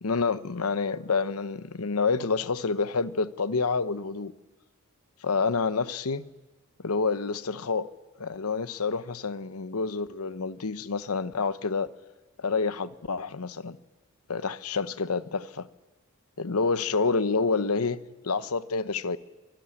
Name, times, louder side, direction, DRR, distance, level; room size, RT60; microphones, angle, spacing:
voice 1, 0.0-4.3 5.2-6.2 6.8-7.9 8.2-11.9 12.4-13.8 14.3-15.7 16.4-19.2, left 4 dB, 80° left, 0.9 m, -28 dB
25.5 x 18.0 x 10.0 m
head